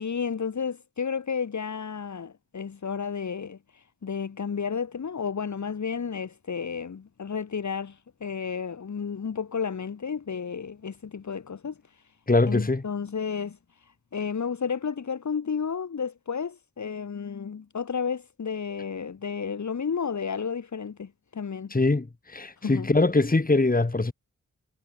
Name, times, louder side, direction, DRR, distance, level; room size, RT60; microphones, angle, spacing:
voice 1, 0.0-11.8 12.5-13.6 14.1-21.7 22.6-22.9, left 6 dB, 55° left, 1.6 m, -32 dB
voice 2, 12.3-12.8 21.7-24.1, left 2 dB, 25° left, 2.3 m, -22 dB
cardioid pair, 60°, 34 cm